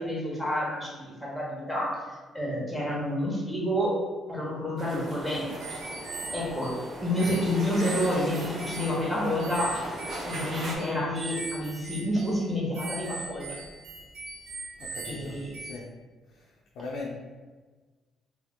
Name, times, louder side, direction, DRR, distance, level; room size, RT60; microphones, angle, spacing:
voice 1, 0.0-4.0 4.3-5.5 5.9-6.0 6.3-6.7 7.0-9.8 10.2-13.6 15.0-15.5, left 1 dB, 5° left, -5 dB, 1.1 m, -29 dB
sound 1, 4.8-10.8, right 1 dB, 50° right, 0.7 m, -38 dB
sound 2, 5.6-15.7, right 3 dB, 85° right, 0.4 m, -41 dB
voice 2, 14.8-15.9 16.3-17.1, left 3 dB, 80° left, -3 dB, 0.4 m, -40 dB
2.7 x 2.0 x 3.4 m, 1.3 s
cardioid pair, 90°, 0 cm